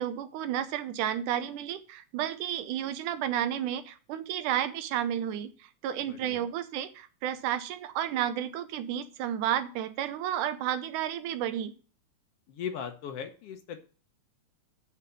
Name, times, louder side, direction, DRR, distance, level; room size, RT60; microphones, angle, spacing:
voice 1, 0.0-11.7, right 10 dB, 85° right, 11 dB, 2.3 m, -32 dB
voice 2, 6.1-6.5 12.5-13.8, left 7 dB, 65° left, 6 dB, 1.5 m, -38 dB
6.9 x 6.3 x 7.0 m, 0.37 s
omnidirectional pair, 3.5 m